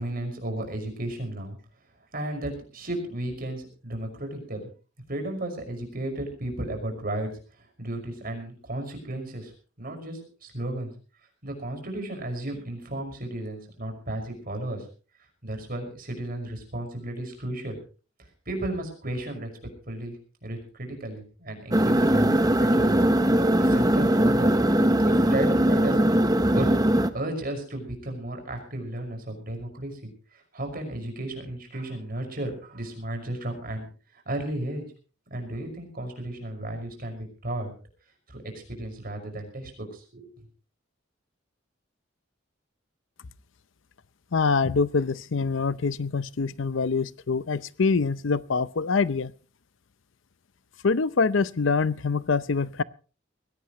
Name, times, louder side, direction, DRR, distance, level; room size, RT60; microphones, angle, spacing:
voice 1, 0.0-1.6 2.1-4.6 5.1-9.5 9.8-10.9 11.4-14.8 15.4-17.8 18.5-19.5 19.9-23.0 23.6-24.6 25.0-26.2 26.5-26.7 27.1-33.9 34.1-34.8 35.3-37.7 38.3-38.4 38.7-40.4, right 1 dB, 50° right, 4 dB, 5.7 m, -34 dB
sound 1, 21.7-27.1, right 1 dB, 20° right, 1.0 m, -20 dB
voice 2, 44.3-49.3 50.8-52.8, left 4 dB, 75° left, 17 dB, 0.6 m, -25 dB
21.0 x 17.0 x 3.1 m, 0.37 s
head